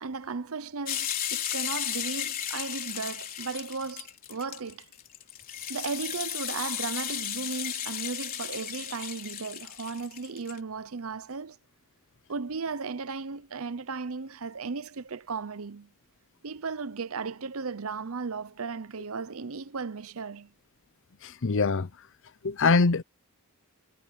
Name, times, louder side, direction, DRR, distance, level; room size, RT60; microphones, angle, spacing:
voice 1, 0.0-4.9 5.7-11.6 12.3-15.9 16.4-20.5, right 4 dB, 65° right, 0.8 m, -36 dB
sound 1, 0.9-10.6, left 10 dB, 40° left, 4.2 m, -34 dB
voice 2, 21.2-21.9 22.4-23.0, left 4 dB, 60° left, 0.7 m, -23 dB
head